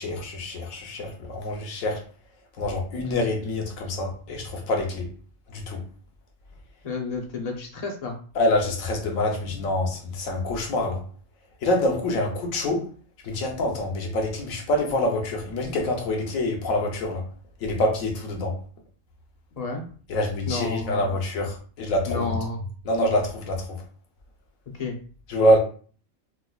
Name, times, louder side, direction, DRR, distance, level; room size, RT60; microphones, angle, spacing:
voice 1, 0.0-2.0 2.6-5.1 5.5-5.8 8.4-11.0 11.6-12.8 13.2-17.2 17.6-18.5 20.1-22.3 22.9-23.7 25.3-25.6, left 1 dB, 85° left, 1.2 m, -25 dB
voice 2, 6.8-8.2 19.6-19.8 20.5-21.0 22.1-22.6 24.7-25.0, left 3 dB, 45° left, 0.5 m, -31 dB
4.8 x 2.2 x 2.3 m
omnidirectional pair, 1.4 m